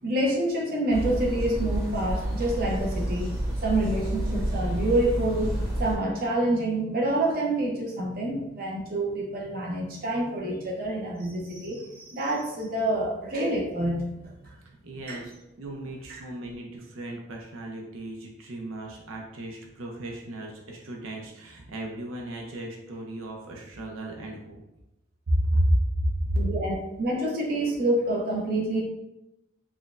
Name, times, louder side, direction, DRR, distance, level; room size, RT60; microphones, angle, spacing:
voice 1, 0.0-14.6 15.1-15.2 26.4-28.8, right 1 dB, 45° right, -2 dB, 0.7 m, -27 dB
sound 1, 0.9-5.9, right 1 dB, 15° right, 0.8 m, -29 dB
voice 2, 14.8-24.6 25.3-26.4, right 1 dB, 90° right, 0 dB, 0.7 m, -31 dB
6.0 x 2.2 x 2.4 m, 0.90 s
head